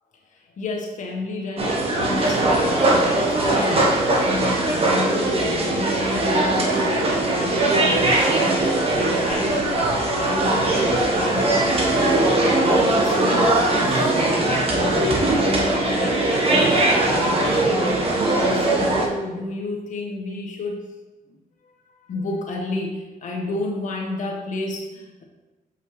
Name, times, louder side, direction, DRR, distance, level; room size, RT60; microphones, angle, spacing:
voice 1, 0.3-9.8 10.1-14.2 14.7-20.9 21.3-21.4 21.6-21.7 22.0-25.2, left 2 dB, 55° left, 0 dB, 1.4 m, -31 dB
sound 1, 1.6-19.1, right 2 dB, 40° right, 1.3 m, -20 dB
7.1 x 5.6 x 3.2 m, 1.1 s
cardioid pair, 90°, 15 cm